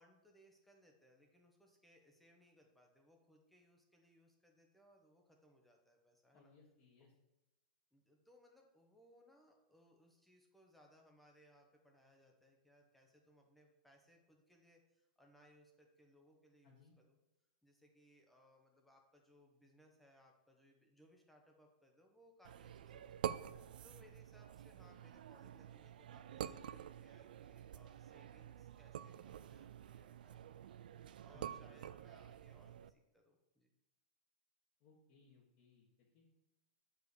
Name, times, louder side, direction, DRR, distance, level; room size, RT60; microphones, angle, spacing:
voice 1, 0.0-6.5 7.0-7.1 7.9-16.8 17.1-17.2 17.6-23.2 23.8-30.7 31.2-33.7, equal, ahead, 1 dB, 1.1 m, -68 dB
voice 2, 6.3-7.1 16.6-16.9 31.3-31.7 34.8-36.4, left 5 dB, 40° left, -4 dB, 1.6 m, -66 dB
sound 1, 22.4-32.9, right 10 dB, 80° right, 0.4 m, -48 dB
7.8 x 5.1 x 6.7 m, 0.96 s
supercardioid pair, 160°, 5 cm